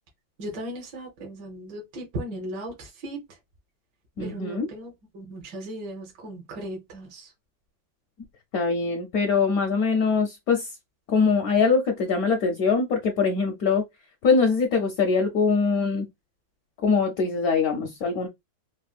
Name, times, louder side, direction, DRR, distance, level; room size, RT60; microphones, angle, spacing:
voice 1, 0.4-3.2 4.2-7.3, right 1 dB, 65° right, 1.6 m, -37 dB
voice 2, 4.2-4.7 8.5-10.7 11.1-13.8 14.2-16.1 16.8-18.3, left 5 dB, 65° left, 0.9 m, -23 dB
4.1 x 2.0 x 2.4 m
omnidirectional pair, 2.1 m